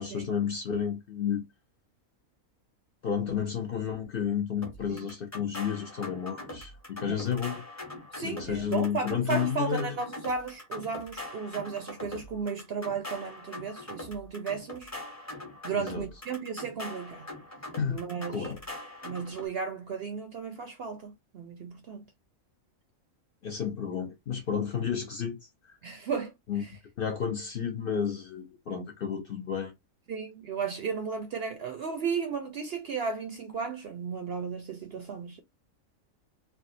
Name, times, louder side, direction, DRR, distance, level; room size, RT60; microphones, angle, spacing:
voice 1, 0.0-1.4 3.0-7.6 8.2-10.0 15.7-16.1 17.8-18.0 18.3-18.7 23.4-25.8 26.5-26.6 27.0-29.7, left 7 dB, 55° left, 0.7 m, -31 dB
sound 1, 4.6-19.5, left 1 dB, 15° left, 0.7 m, -42 dB
voice 2, 8.1-14.9 15.6-17.3 17.9-18.5 19.0-22.1 25.8-26.8 30.1-35.4, right 5 dB, 65° right, 0.6 m, -34 dB
3.4 x 2.3 x 2.6 m
omnidirectional pair, 1.5 m